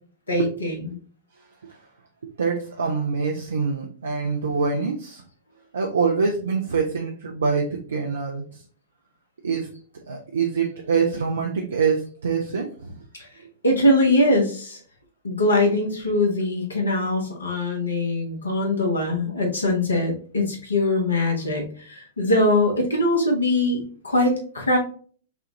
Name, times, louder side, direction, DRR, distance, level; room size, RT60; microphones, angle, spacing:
voice 1, 0.3-1.0 13.2-13.3 13.6-14.8 15.2-24.8, left 1 dB, 75° left, 1 dB, 1.3 m, -22 dB
voice 2, 2.4-5.2 5.7-8.6 9.4-9.7 10.1-12.9, right 5 dB, 70° right, 1 dB, 0.6 m, -25 dB
5.6 x 2.5 x 2.9 m, 0.43 s
figure-of-eight pair, 105°, 0 cm